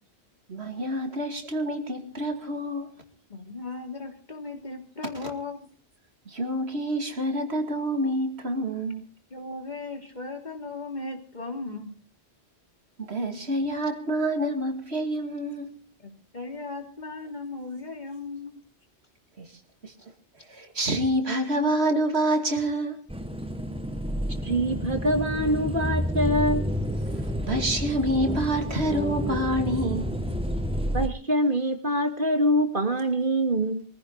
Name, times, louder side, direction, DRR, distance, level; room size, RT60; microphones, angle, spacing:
voice 1, 0.5-3.1 6.3-9.0 13.0-15.8 19.4-19.5 19.8-19.9 20.5-23.0 27.1-30.1, right 1 dB, 70° right, 2.7 m, -27 dB
voice 2, 3.3-5.6 9.3-11.9 16.0-18.6, left 3 dB, 40° left, 3.1 m, -37 dB
sound 1, 23.1-31.1, equal, 5° right, 1.3 m, -29 dB
voice 3, 24.4-26.8 30.9-33.8, equal, 50° right, 2.2 m, -24 dB
23.5 x 15.0 x 3.9 m
omnidirectional pair, 1.1 m